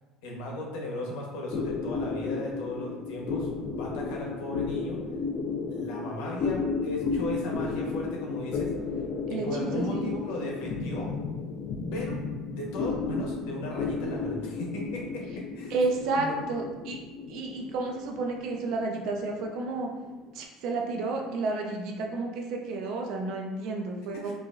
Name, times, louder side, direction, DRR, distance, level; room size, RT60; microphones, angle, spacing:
voice 1, 0.2-5.0 5.7-8.7 9.3-11.1 11.9-12.2 12.5-15.8 16.2-16.5 24.1-24.3, left 1 dB, 85° left, -2 dB, 1.0 m, -36 dB
sound 1, 1.5-20.3, left 4 dB, 45° left, 0.4 m, -33 dB
voice 2, 9.3-10.1 15.7-17.0 17.3-19.9 20.3-24.3, right 3 dB, 65° right, 1 dB, 0.7 m, -31 dB
4.7 x 2.5 x 2.5 m, 1.2 s
cardioid pair, 145°, 0 cm